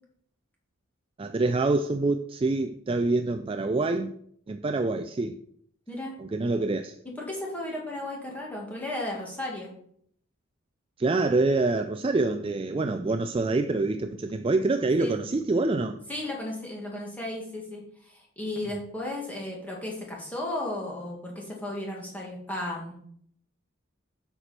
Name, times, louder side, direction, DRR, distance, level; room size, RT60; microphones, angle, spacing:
voice 1, 1.2-4.1 4.5-5.3 6.2-7.0 11.0-16.0, right 3 dB, 25° right, 0.3 m, -26 dB
voice 2, 5.9-6.2 7.0-9.7 15.0-15.2 16.1-22.9, left 1 dB, 5° left, 2.1 m, -34 dB
8.4 x 6.7 x 4.4 m
head